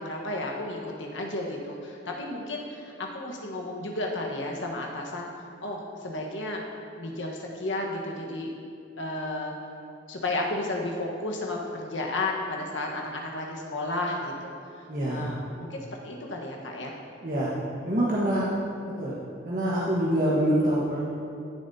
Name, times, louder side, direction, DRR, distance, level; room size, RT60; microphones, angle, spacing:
voice 1, 0.0-5.3 5.6-6.6 6.9-8.5 9.0-9.5 10.1-16.9, left 2 dB, 90° left, -1 dB, 1.3 m, -33 dB
voice 2, 14.9-15.3 17.2-18.5 19.0-19.1 19.4-21.0, right 1 dB, 45° right, -8 dB, 1.3 m, -25 dB
13.5 x 7.2 x 2.8 m, 2.5 s
head